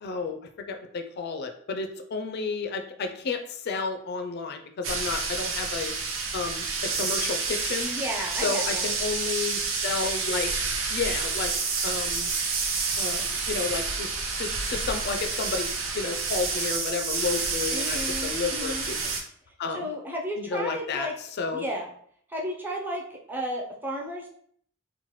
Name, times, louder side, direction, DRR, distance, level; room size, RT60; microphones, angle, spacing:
voice 1, 0.0-0.4 0.7-5.9 6.3-7.9 8.4-10.5 10.9-11.5 11.8-12.3 13.0-15.7 15.9-19.2 19.6-19.9 20.4-21.1 21.4-21.6, left 4 dB, 55° left, 6 dB, 0.4 m, -31 dB
sound 1, 4.8-19.2, right 4 dB, 85° right, 0.6 m, -29 dB
voice 2, 7.9-8.9 17.7-18.9 19.7-21.1 21.5-21.9 22.3-24.3, equal, 10° right, -2 dB, 0.4 m, -33 dB
3.1 x 2.1 x 3.0 m, 0.62 s
head